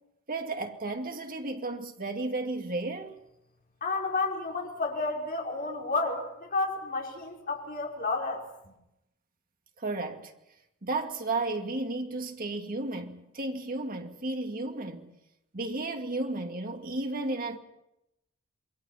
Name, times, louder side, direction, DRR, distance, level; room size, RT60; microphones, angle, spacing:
voice 1, 0.3-3.2 9.8-10.3 10.8-15.1 15.5-17.6, right 2 dB, 40° right, 2.5 m, -33 dB
voice 2, 3.8-8.4, left 3 dB, 40° left, 5.3 m, -31 dB
28.0 x 22.0 x 5.8 m
head